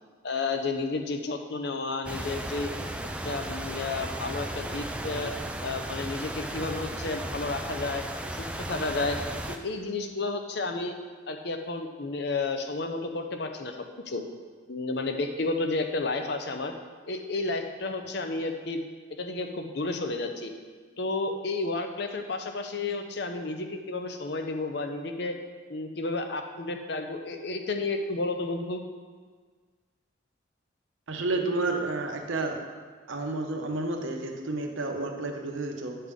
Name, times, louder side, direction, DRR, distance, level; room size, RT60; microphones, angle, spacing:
voice 1, 0.2-2.7 3.2-5.3 5.6-8.1 8.3-9.2 9.5-10.9 11.3-13.8 14.1-14.2 14.7-16.7 17.1-18.8 19.1-20.5 21.0-25.4 25.7-28.8, left 3 dB, 55° left, 5 dB, 0.6 m, -31 dB
sound 1, 2.0-9.6, right 1 dB, 5° right, 0.3 m, -35 dB
voice 2, 31.1-32.6 33.1-36.0, right 2 dB, 75° right, 2 dB, 0.9 m, -30 dB
9.7 x 5.6 x 3.6 m, 1.5 s
head